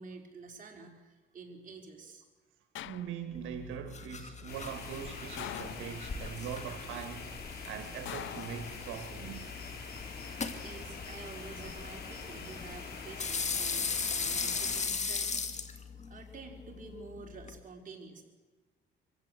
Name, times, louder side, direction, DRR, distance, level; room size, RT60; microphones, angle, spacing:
voice 1, 0.0-2.2 10.4-15.4 16.1-18.2, right 3 dB, 45° right, 4.5 m, -49 dB
sound 1, 2.7-3.5 5.4-6.3 8.0-9.2 10.6-11.1, left 14 dB, 75° left, 0.6 m, -44 dB
voice 2, 2.8-7.3 7.6-9.5, right 8 dB, 85° right, 1.6 m, -41 dB
sound 2, 3.3-17.6, left 5 dB, 35° left, 2.0 m, -39 dB
sound 3, 4.5-14.8, left 4 dB, 55° left, 5.2 m, -45 dB
24.0 x 16.0 x 8.2 m
cardioid pair, 90°, 20 cm